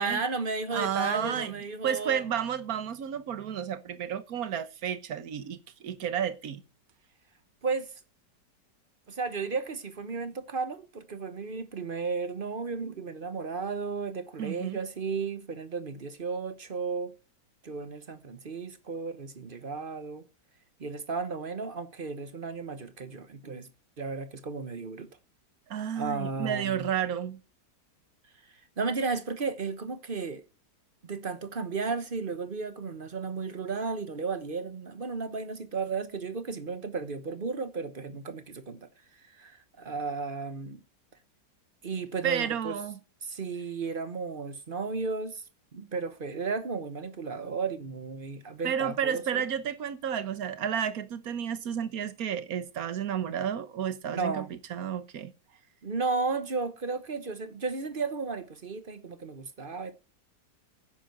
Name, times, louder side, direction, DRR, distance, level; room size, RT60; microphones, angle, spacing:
voice 1, 0.0-2.2 7.6-7.9 9.1-17.1 17.6-20.3 20.8-23.7 24.0-25.1 26.0-26.9 28.8-30.4 31.0-38.9 39.2-40.8 41.8-42.8 43.2-45.4 45.7-49.4 54.1-54.5 55.8-59.9, right 4 dB, 35° right, 1.1 m, -34 dB
voice 2, 0.7-1.5 1.8-6.6 14.4-14.8 25.7-27.4 42.2-43.0 48.6-55.3, right 8 dB, 60° right, 1.5 m, -31 dB
10.0 x 8.7 x 7.9 m
omnidirectional pair, 1.8 m